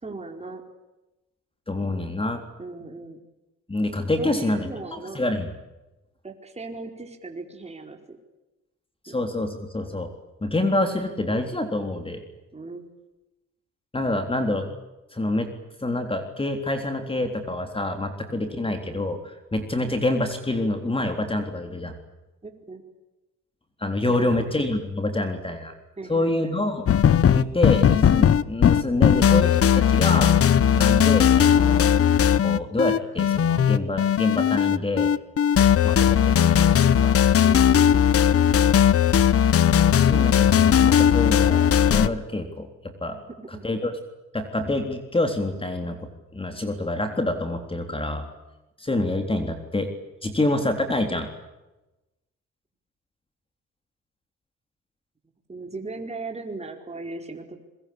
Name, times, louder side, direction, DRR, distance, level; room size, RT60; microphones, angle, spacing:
voice 1, 0.0-0.6 2.6-3.2 4.2-5.2 6.2-8.2 9.1-9.2 12.5-12.9 18.7-19.0 22.4-22.8 24.0-24.5 26.0-26.6 37.4-38.0 43.1-43.6 55.5-57.6, right 3 dB, 20° right, 3 dB, 4.6 m, -37 dB
voice 2, 1.7-2.4 3.7-5.5 9.0-10.1 10.4-12.2 13.9-14.7 15.1-15.5 15.8-22.0 23.8-25.7 26.1-26.9 27.3-30.3 30.7-31.9 32.4-35.1 35.8-36.7 37.0-37.2 39.9-42.7 43.0-43.2 43.6-43.9 44.3-48.2 48.8-49.9 50.2-51.3, left 2 dB, 20° left, 6 dB, 3.7 m, -27 dB
sound 1, 26.9-42.1, left 9 dB, 50° left, 1.1 m, -18 dB
26.0 x 22.0 x 8.7 m, 1.0 s
cardioid pair, 90°, 30 cm